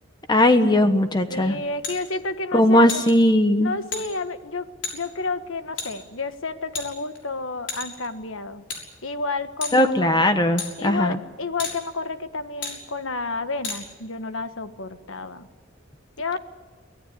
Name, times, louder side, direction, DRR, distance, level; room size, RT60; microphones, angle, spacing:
voice 1, 0.3-1.6 2.5-3.7 9.7-11.2, left 1 dB, 20° left, 8 dB, 1.2 m, -18 dB
voice 2, 1.3-3.0 3.6-4.7 4.9-8.6 9.0-10.2 10.8-15.5 16.2-16.4, left 3 dB, 80° left, 10 dB, 1.4 m, -30 dB
sound 1, 1.8-2.0 2.9-3.1 3.9-4.0 4.8-5.0 5.8-5.9 6.7-7.2 7.7-8.1 8.7-8.8 9.6-9.8 10.6-10.7 11.6-11.8 12.6-12.8 13.6-13.8, left 5 dB, 60° left, 6.2 m, -31 dB
24.0 x 17.5 x 9.9 m, 1.3 s
head